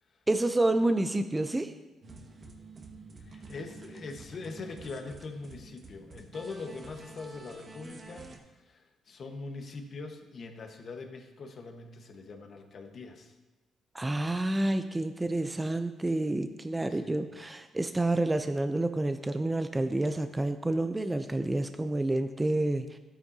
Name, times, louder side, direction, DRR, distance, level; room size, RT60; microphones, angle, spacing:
voice 1, 0.3-1.7 13.9-23.0, right 2 dB, 15° right, 8 dB, 0.5 m, -29 dB
sound 1, 2.0-8.4, right 3 dB, 40° right, 1.5 m, -49 dB
voice 2, 3.2-13.4 16.9-17.2, left 3 dB, 50° left, 4 dB, 1.3 m, -42 dB
12.0 x 8.9 x 2.8 m, 1.1 s
cardioid pair, 90°, 0 cm